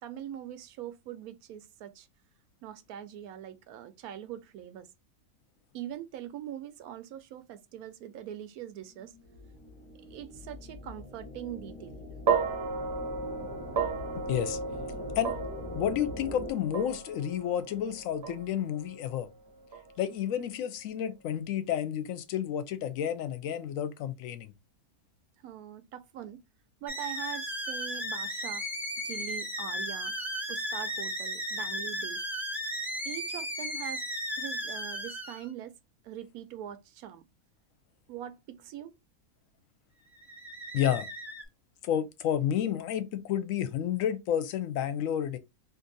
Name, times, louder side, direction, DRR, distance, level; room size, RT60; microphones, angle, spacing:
voice 1, 0.0-2.1 2.6-4.9 5.7-9.1 10.1-12.0 25.4-26.4 26.8-28.7 29.0-30.2 30.5-32.2 33.0-34.0 34.4-35.8 36.0-37.3 38.1-39.0, right 10 dB, 75° right, 1.0 m, -42 dB
sound 1, 8.9-16.5, left 1 dB, 35° left, 0.7 m, -43 dB
sound 2, 12.3-20.6, right 5 dB, 55° right, 0.8 m, -34 dB
voice 2, 14.3-14.6 15.2-15.4 15.7-19.3 20.0-24.5 40.7-41.1 41.8-45.4, left 10 dB, 70° left, 0.9 m, -30 dB
sound 3, 26.9-35.5 40.2-41.4, equal, ahead, 0.4 m, -35 dB
2.7 x 2.6 x 3.8 m
omnidirectional pair, 1.6 m